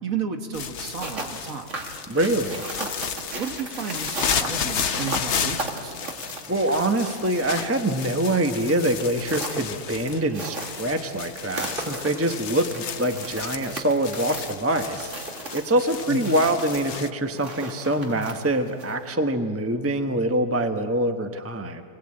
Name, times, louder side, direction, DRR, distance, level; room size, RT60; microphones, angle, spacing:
voice 1, 0.0-1.7 2.8-2.9 3.4-5.9 16.1-16.4, right 5 dB, 90° right, 5 dB, 2.0 m, -32 dB
sound 1, 0.5-17.1, left 7 dB, 60° left, 1.1 m, -33 dB
sound 2, 0.8-19.1, right 2 dB, 65° right, 2.6 m, -38 dB
voice 2, 2.1-2.6 6.5-15.1 15.5-21.8, right 1 dB, 10° right, 6 dB, 1.0 m, -24 dB
Fireworks, 3.8-19.0, right 1 dB, 40° right, 2.9 m, -45 dB
29.0 x 21.0 x 8.8 m, 2.2 s
omnidirectional pair, 1.4 m